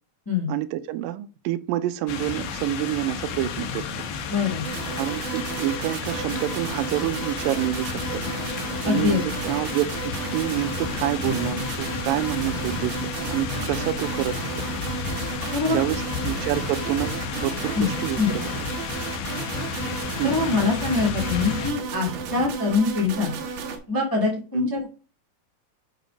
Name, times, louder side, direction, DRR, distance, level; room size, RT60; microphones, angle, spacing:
voice 1, 0.5-3.8 5.0-8.2 8.8-14.7 15.7-18.5 20.2-20.4 24.5-24.7, right 14 dB, 80° right, 2.2 m, -28 dB
sound 1, 2.1-21.7, left 6 dB, 85° left, 2.9 m, -32 dB
voice 2, 4.3-4.6 8.8-9.2 15.5-15.8 17.7-18.3 20.2-23.3 23.9-24.9, left 4 dB, 10° left, 1.0 m, -24 dB
sound 2, 4.6-23.8, right 6 dB, 65° right, 2.5 m, -33 dB
8.2 x 4.0 x 5.1 m
omnidirectional pair, 4.2 m